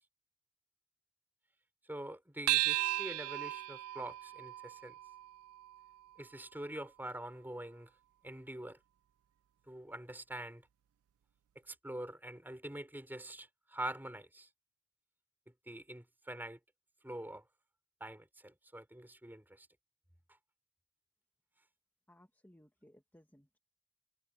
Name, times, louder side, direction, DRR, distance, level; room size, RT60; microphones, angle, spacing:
voice 1, 1.9-4.9 6.2-7.9 8.2-8.8 9.7-10.7 11.6-14.5 15.7-16.6 17.0-17.4 18.0-19.7, right 1 dB, 10° right, 4.0 m, -45 dB
sound 1, 2.5-7.2, right 19 dB, 90° right, 0.3 m, -37 dB
voice 2, 22.1-23.6, left 1 dB, 10° left, 2.0 m, -62 dB
head